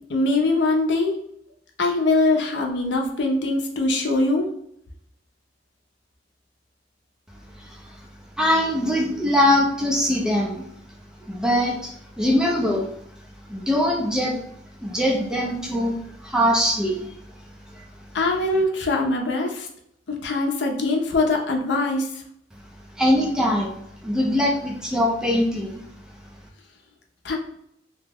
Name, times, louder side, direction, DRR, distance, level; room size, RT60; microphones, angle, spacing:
voice 1, 0.1-1.2 1.8-4.5 18.1-19.7 20.1-22.1 27.2-27.4, left 2 dB, 70° left, 2 dB, 0.6 m, -22 dB
voice 2, 8.4-10.6 11.3-12.9 13.5-14.4 14.8-17.1 17.7-17.8 23.0-23.7 24.0-25.8, left 1 dB, 5° right, -1 dB, 0.4 m, -22 dB
2.9 x 2.1 x 3.4 m, 0.71 s
head